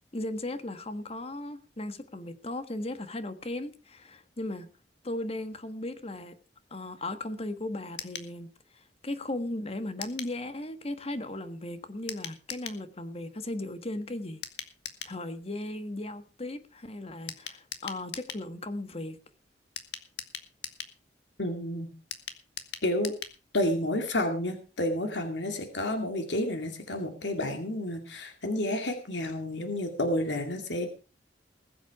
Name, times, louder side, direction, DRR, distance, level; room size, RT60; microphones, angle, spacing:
voice 1, 0.1-4.7 5.0-6.3 6.7-8.5 9.0-14.4 15.0-19.2, left 1 dB, 35° left, 10 dB, 1.5 m, -36 dB
sound 1, 8.0-8.3 10.0-10.4 12.1-12.8 14.4-15.2 17.3-18.5 19.8-21.0 22.1-23.4 23.7-23.8 24.0-24.1, left 9 dB, 75° left, 1.7 m, -40 dB
voice 2, 21.4-21.9 22.8-23.1 23.5-30.9, left 1 dB, 90° left, 5 dB, 2.3 m, -30 dB
20.5 x 8.0 x 4.8 m, 0.34 s
head